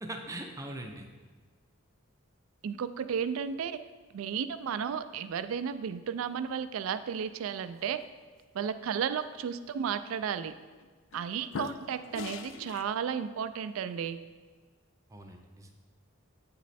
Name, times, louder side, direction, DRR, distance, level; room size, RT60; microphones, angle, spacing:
voice 1, 0.0-1.1 15.1-15.7, right 1 dB, 15° right, 3 dB, 0.5 m, -41 dB
voice 2, 2.6-3.8 4.1-8.0 8.5-10.5 11.1-14.2, right 7 dB, 75° right, 13 dB, 0.3 m, -33 dB
sound 1, 10.0-10.2 10.8-11.2 11.5-12.8, left 5 dB, 60° left, 0.3 m, -40 dB
8.7 x 3.1 x 4.1 m, 1.4 s
head